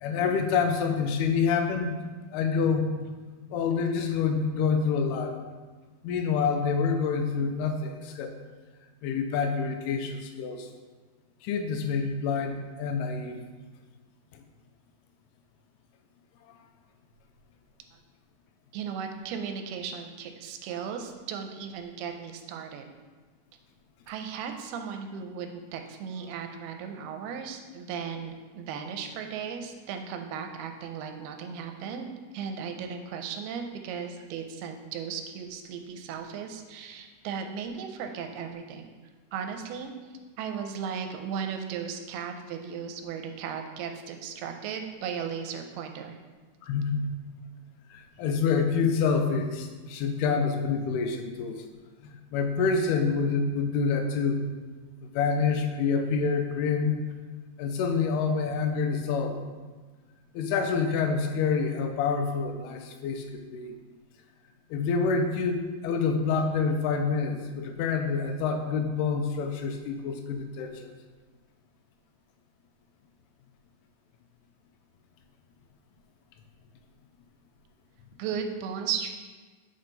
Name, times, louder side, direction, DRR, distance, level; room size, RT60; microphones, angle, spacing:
voice 1, 0.0-2.0 2.3-2.9 3.5-5.4 6.0-8.3 9.0-10.7 11.4-13.4 46.6-47.1 47.9-51.6 52.0-54.4 55.0-57.0 57.6-59.4 60.3-63.7 64.7-70.9, left 5 dB, 85° left, 6 dB, 2.6 m, -27 dB
voice 2, 18.7-22.9 24.1-38.9 39.3-39.9 40.4-46.2 78.2-79.1, right 7 dB, 90° right, 5 dB, 2.6 m, -36 dB
6.5 x 5.5 x 3.9 m, 1.4 s
omnidirectional pair, 4.5 m